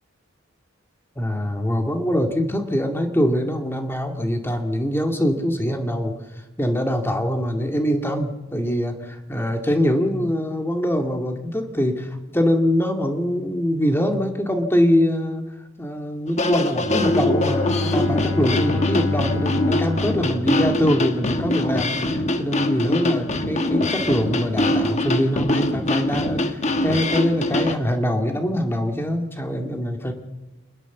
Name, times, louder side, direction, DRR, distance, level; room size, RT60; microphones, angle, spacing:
voice 1, 1.2-6.1 6.6-15.4 15.8-30.1, equal, 10° left, 5 dB, 2.1 m, -23 dB
sound 1, 16.3-27.8, left 1 dB, 35° left, 1.3 m, -23 dB
Bowed string instrument, 16.7-21.5, left 2 dB, 80° left, 2.6 m, -27 dB
27.0 x 20.0 x 7.2 m, 1.1 s
head